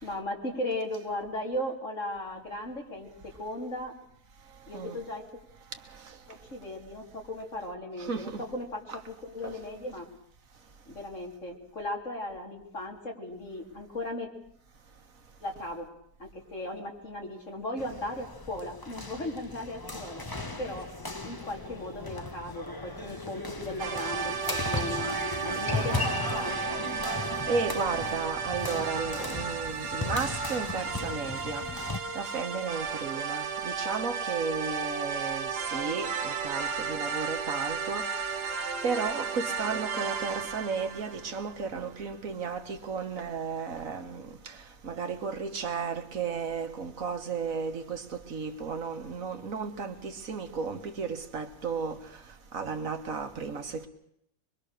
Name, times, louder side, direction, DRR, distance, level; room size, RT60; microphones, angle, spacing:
voice 1, 0.0-3.1 3.4-3.9 4.7-5.2 6.3-10.1 10.9-14.3 15.4-15.9 16.2-20.2 20.6-20.9 21.2-25.1 25.4-26.9, left 1 dB, 50° left, 4.0 m, -37 dB
voice 2, 8.0-8.4 8.9-9.0 9.4-9.5 25.7-25.9 27.5-31.6 32.2-38.1 38.8-44.6 44.8-52.0 52.5-53.9, right 5 dB, 55° right, 2.1 m, -34 dB
sound 1, 17.8-32.0, left 2 dB, 15° left, 1.2 m, -36 dB
sound 2, 23.8-41.6, right 6 dB, 85° right, 1.8 m, -34 dB
24.5 x 23.0 x 6.7 m
omnidirectional pair, 1.7 m